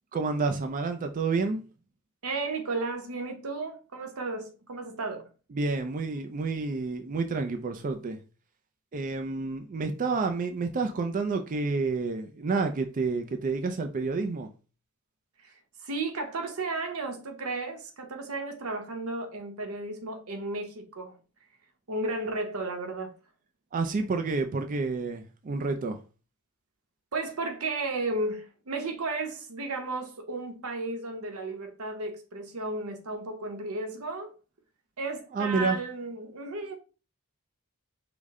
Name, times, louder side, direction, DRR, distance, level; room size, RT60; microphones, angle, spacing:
voice 1, 0.1-1.6 5.5-8.2 8.9-14.5 23.7-26.0 35.3-35.8, right 4 dB, 40° right, 0.4 m, -29 dB
voice 2, 2.2-5.3 15.4-15.5 15.8-21.2 21.9-23.1 27.1-34.3 35.0-36.8, right 2 dB, 90° right, 0.9 m, -34 dB
5.0 x 2.1 x 3.5 m
head